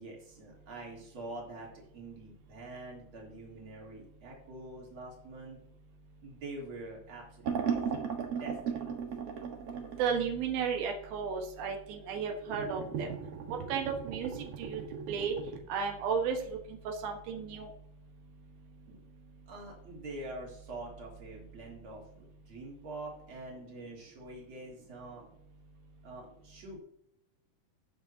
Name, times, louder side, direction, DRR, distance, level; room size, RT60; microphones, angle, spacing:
voice 1, 0.0-5.6 6.2-7.6 7.9-8.1 8.4-8.9 18.9-19.1 19.5-25.2 26.0-26.8, right 2 dB, 35° right, -2 dB, 3.7 m, -45 dB
sound 1, 7.4-10.1 12.5-15.6, right 7 dB, 55° right, 2.1 m, -36 dB
voice 2, 10.0-13.1 13.7-14.8 15.1-15.4 15.7-16.4 16.9-17.7, right 6 dB, 90° right, 3 dB, 3.2 m, -33 dB
18.0 x 6.9 x 2.8 m, 0.75 s
omnidirectional pair, 4.1 m